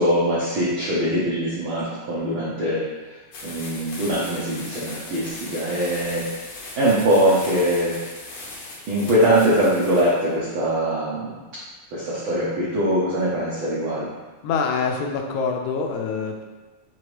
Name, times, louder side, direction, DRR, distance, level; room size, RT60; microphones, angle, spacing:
voice 1, 0.0-2.8 3.4-6.3 6.8-7.9 8.9-11.3 11.9-14.1, right 1 dB, 75° right, -8 dB, 1.1 m, -22 dB
sound 1, 3.3-10.2, left 2 dB, 65° left, 2.0 m, -38 dB
voice 2, 14.4-16.4, left 5 dB, 85° left, 2 dB, 2.0 m, -25 dB
5.6 x 2.9 x 3.1 m, 1.2 s
omnidirectional pair, 3.4 m